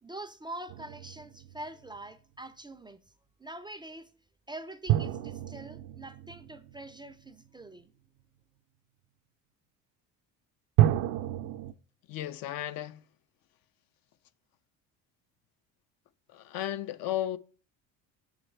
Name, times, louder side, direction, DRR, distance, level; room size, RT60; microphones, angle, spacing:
voice 1, 0.0-3.0 3.4-4.1 4.5-7.9, right 1 dB, 10° right, 0.4 m, -44 dB
sound 1, 0.7-2.0 4.9-7.5 10.8-11.7, right 13 dB, 60° right, 0.5 m, -29 dB
voice 2, 12.1-13.1 16.3-17.4, left 12 dB, 60° left, 0.5 m, -34 dB
6.3 x 4.0 x 4.5 m
supercardioid pair, 80°, 40 cm